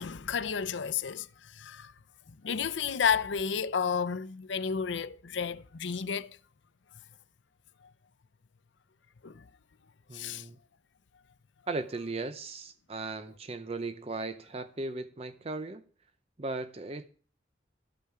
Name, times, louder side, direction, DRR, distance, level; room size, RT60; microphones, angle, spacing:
voice 1, 0.0-1.9 2.4-6.4 9.2-9.5 10.1-10.5, left 6 dB, 90° left, 0.6 m, -32 dB
voice 2, 10.1-10.6 11.7-15.8 16.4-17.0, right 3 dB, 35° right, 0.6 m, -37 dB
13.0 x 8.7 x 4.8 m
head